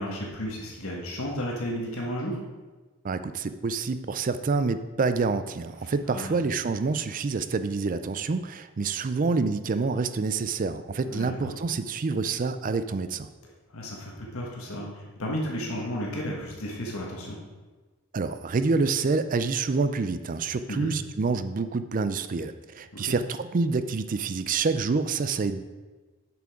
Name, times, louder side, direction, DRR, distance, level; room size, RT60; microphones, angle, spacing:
voice 1, 0.0-2.4 5.8-6.4 11.0-11.5 13.7-17.4 20.7-20.9 22.9-23.1, equal, 70° left, -2 dB, 1.4 m, -33 dB
voice 2, 3.0-13.3 18.1-25.7, right 4 dB, 40° right, 12 dB, 0.4 m, -27 dB
7.5 x 6.0 x 4.8 m, 1.3 s
head